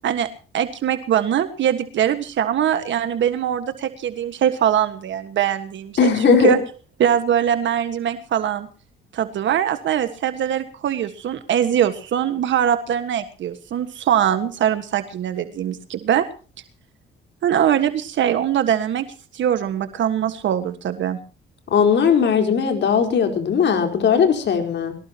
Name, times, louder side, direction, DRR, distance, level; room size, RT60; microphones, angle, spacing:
voice 1, 0.5-6.6 7.0-8.7 9.1-16.2 17.4-19.1 19.3-21.2, right 10 dB, 70° right, 10 dB, 1.6 m, -22 dB
voice 2, 6.0-6.5 21.7-25.0, left 7 dB, 65° left, 5 dB, 4.4 m, -18 dB
23.0 x 18.5 x 3.0 m, 0.38 s
cardioid pair, 90°, 20 cm